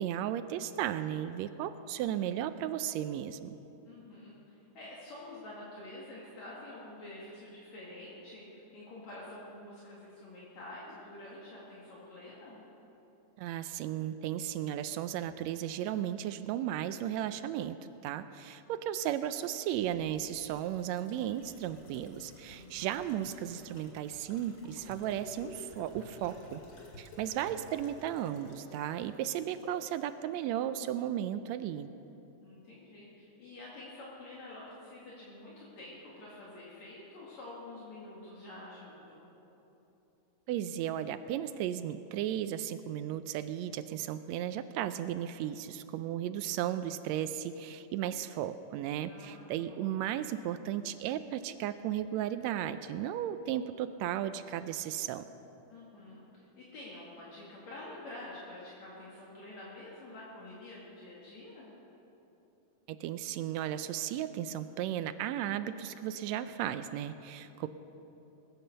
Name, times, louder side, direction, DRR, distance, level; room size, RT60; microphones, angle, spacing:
voice 1, 0.0-3.5 13.4-26.6 27.0-31.9 40.5-55.2 62.9-67.7, right 11 dB, 85° right, 11 dB, 1.6 m, -35 dB
voice 2, 3.8-12.6 22.4-22.9 23.2-23.3 32.4-39.2 49.1-49.9 55.7-61.7, left 2 dB, 60° left, -6 dB, 3.3 m, -48 dB
sound 1, 19.7-30.1 30.4-30.5, left 2 dB, 40° left, 2.3 m, -53 dB
21.0 x 10.0 x 6.7 m, 3.0 s
omnidirectional pair, 3.6 m